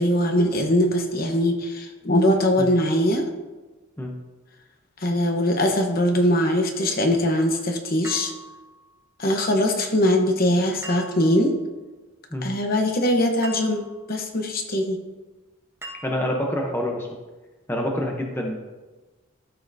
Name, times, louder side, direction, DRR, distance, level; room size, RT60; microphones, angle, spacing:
voice 1, 0.0-3.3 5.0-8.3 9.2-11.5 12.4-15.0, left 1 dB, 45° left, 3 dB, 1.0 m, -21 dB
sound 1, 8.0-9.0 10.8-11.6 13.4-14.1 15.8-16.6, right 1 dB, 10° right, 1.0 m, -42 dB
voice 2, 16.0-17.1 17.7-18.6, left 1 dB, 10° left, 0 dB, 0.8 m, -27 dB
14.5 x 5.6 x 2.7 m, 1.2 s
head